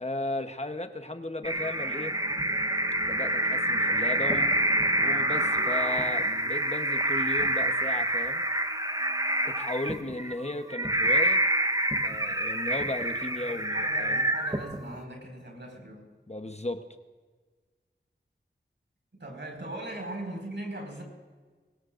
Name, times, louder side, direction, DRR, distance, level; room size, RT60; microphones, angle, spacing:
voice 1, 0.0-2.1 3.0-4.6 5.0-8.4 9.4-11.4 12.0-14.2 16.3-16.8, left 2 dB, 35° left, 7 dB, 1.1 m, -35 dB
sound 1, 1.4-15.0, right 1 dB, 20° right, 1.0 m, -27 dB
voice 2, 13.5-16.1 19.2-21.0, right 1 dB, 70° right, 0 dB, 5.3 m, -39 dB
22.5 x 20.0 x 2.6 m, 1.4 s
wide cardioid pair, 45°, 19 cm